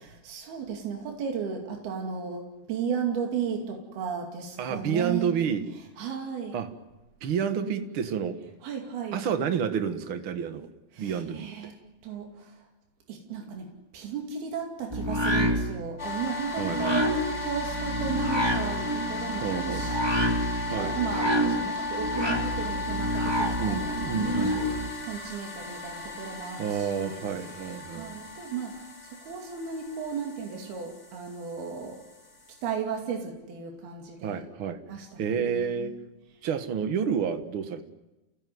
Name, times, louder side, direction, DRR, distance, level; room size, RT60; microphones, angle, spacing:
voice 1, 0.0-5.3 6.0-6.6 8.6-9.2 10.9-11.8 12.0-12.7 13.1-24.7 25.0-27.2 27.5-32.0 32.6-34.5 34.9-36.0, right 6 dB, 75° right, 4.4 m, -35 dB
voice 2, 4.6-5.6 6.5-6.7 7.2-8.4 9.1-10.7 11.0-11.7 16.6-17.0 19.4-19.9 20.7-20.9 23.6-24.6 26.6-28.2 34.2-35.9 36.4-37.9, right 7 dB, 55° right, 1.5 m, -29 dB
sound 1, 14.9-24.9, equal, 15° right, 0.9 m, -28 dB
sound 2, 16.0-32.7, left 3 dB, 15° left, 4.0 m, -36 dB
29.5 x 18.0 x 9.5 m
omnidirectional pair, 4.5 m